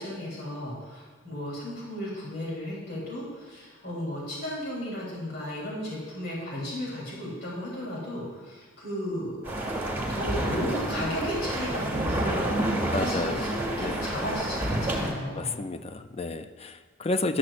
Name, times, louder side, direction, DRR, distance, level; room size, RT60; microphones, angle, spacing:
voice 1, 0.0-9.4 10.1-15.6, equal, 55° left, -5 dB, 3.5 m, -34 dB
sound 1, 9.4-15.1, right 1 dB, 10° right, 1.6 m, -29 dB
voice 2, 12.9-13.4 13.8-14.0 15.4-17.4, left 2 dB, 30° left, 9 dB, 0.4 m, -31 dB
14.0 x 11.5 x 2.5 m, 1.5 s
head